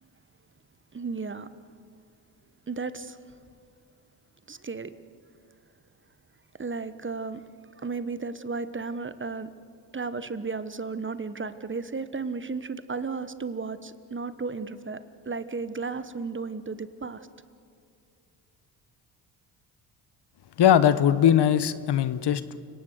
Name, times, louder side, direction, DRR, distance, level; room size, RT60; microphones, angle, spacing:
voice 1, 0.9-1.5 2.7-3.2 4.5-4.9 6.6-7.4 7.8-9.5 9.9-17.2, right 4 dB, 25° right, 13 dB, 1.3 m, -34 dB
voice 2, 20.6-22.6, left 10 dB, 55° left, 14 dB, 1.2 m, -20 dB
30.0 x 18.0 x 6.6 m, 2.4 s
hypercardioid pair, 50°, 50 cm